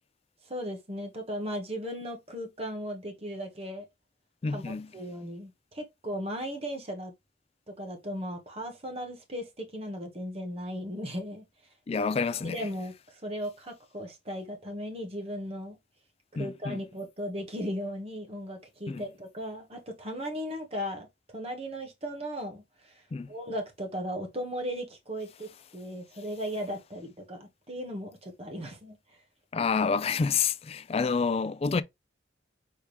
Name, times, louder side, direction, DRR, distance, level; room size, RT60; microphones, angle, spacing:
voice 1, 0.4-3.9 4.5-4.6 4.9-7.1 7.7-11.4 12.4-15.8 16.3-21.1 21.3-23.0 23.3-29.0, equal, 35° right, 1.3 m, -37 dB
voice 2, 4.4-4.9 11.9-12.7 16.4-16.8 18.9-19.0 23.1-23.3 29.5-31.8, left 5 dB, 35° left, 0.3 m, -28 dB
4.4 x 3.5 x 3.3 m
head